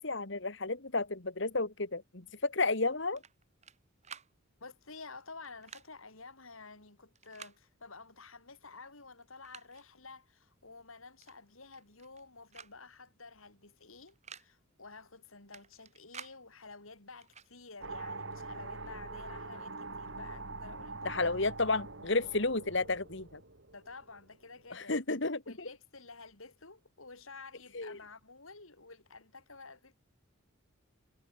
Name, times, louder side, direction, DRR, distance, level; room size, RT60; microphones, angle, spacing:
voice 1, 0.0-3.2 21.1-23.4 24.7-25.7 27.7-28.0, left 3 dB, 60° left, 1.9 m, -32 dB
sound 1, 3.2-3.8 4.0-4.3 5.4-5.9 7.2-7.6 8.7-8.8 9.2-9.8 11.2-11.4 11.6-12.2 12.5-12.7 13.0-13.1 14.1-14.5 15.5-16.4 17.2-17.5, right 7 dB, 35° right, 5.8 m, -51 dB
voice 2, 4.6-21.3 23.7-25.0 25.4-30.0, left 4 dB, 80° left, 5.0 m, -51 dB
sound 2, 17.8-24.2, right 3 dB, 60° right, 3.0 m, -44 dB
head